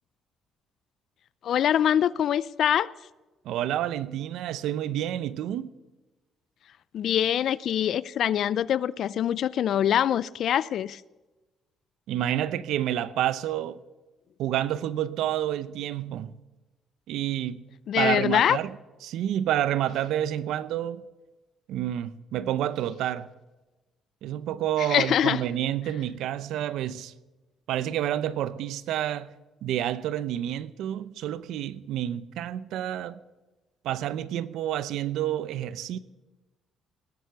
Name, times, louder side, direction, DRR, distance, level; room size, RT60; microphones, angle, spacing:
voice 1, 1.4-2.9 6.9-11.0 17.9-18.6 24.8-25.4, left 10 dB, 65° left, 0.4 m, -24 dB
voice 2, 3.4-5.7 12.1-13.8 14.4-16.4 17.1-17.7 18.0-18.7 19.0-21.0 21.7-23.3 24.2-27.1 27.7-29.3 29.6-33.2 33.8-36.0, right 11 dB, 80° right, 0.7 m, -29 dB
19.0 x 7.9 x 6.9 m
cardioid pair, 90°, 0 cm